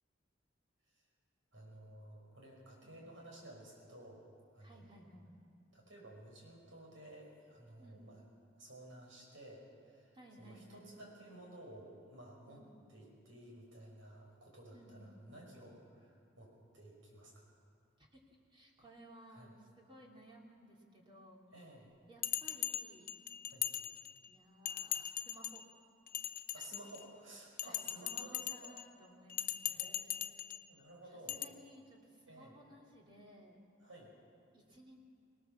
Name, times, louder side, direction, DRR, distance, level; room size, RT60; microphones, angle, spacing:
voice 1, 1.5-4.2 4.5-5.0 5.7-8.2 8.6-12.6 12.9-17.4 19.3-19.5 21.5-21.9 23.5-23.7 26.5-28.8 29.7-31.4 32.3-32.6 33.8-34.1, right 1 dB, 85° right, -1 dB, 6.4 m, -55 dB
voice 2, 4.6-5.3 7.8-8.1 10.1-10.9 12.5-12.7 14.7-15.5 18.0-18.2 18.5-21.5 22.1-23.1 24.2-25.6 27.6-29.9 31.1-33.6 34.5-35.0, equal, 25° right, -2 dB, 3.0 m, -58 dB
Bell, 22.2-24.3 24.6-25.6 26.1-27.1 27.6-28.8 29.3-30.6 31.3-31.4, left 12 dB, 45° left, 0.6 m, -40 dB
25.0 x 19.0 x 7.1 m, 2.3 s
head